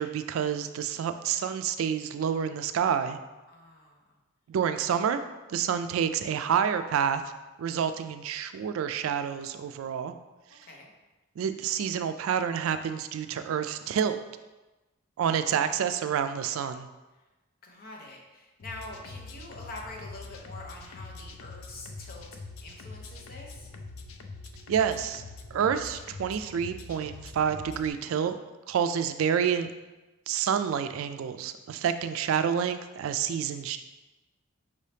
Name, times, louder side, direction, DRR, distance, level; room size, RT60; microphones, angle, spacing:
voice 1, 0.0-3.2 4.5-5.2 5.5-7.2 7.6-10.1 11.4-14.2 15.2-16.9 24.7-25.2 25.5-28.4 28.7-29.7 30.3-33.8, right 8 dB, 80° right, 10 dB, 0.3 m, -28 dB
voice 2, 3.5-4.2 10.6-10.9 17.6-23.7 31.7-31.9, left 2 dB, 45° left, -1 dB, 0.8 m, -45 dB
sound 1, 18.6-27.9, left 3 dB, 85° left, 0.4 m, -44 dB
5.3 x 2.7 x 3.3 m, 1.1 s
head